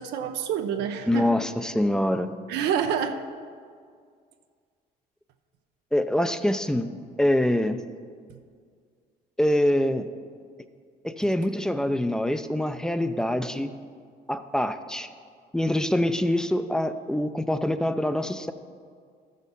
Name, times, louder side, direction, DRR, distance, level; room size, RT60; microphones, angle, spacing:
voice 1, 0.0-1.4 2.5-3.2 8.3-8.4, right 8 dB, 85° right, 6 dB, 0.7 m, -28 dB
voice 2, 1.1-2.3 5.9-6.9 7.2-7.8 9.4-10.1 11.0-13.7 14.3-15.1 15.5-18.5, left 1 dB, 5° left, 11 dB, 0.5 m, -25 dB
13.0 x 6.5 x 5.3 m, 2.1 s
cardioid pair, 110°, 17 cm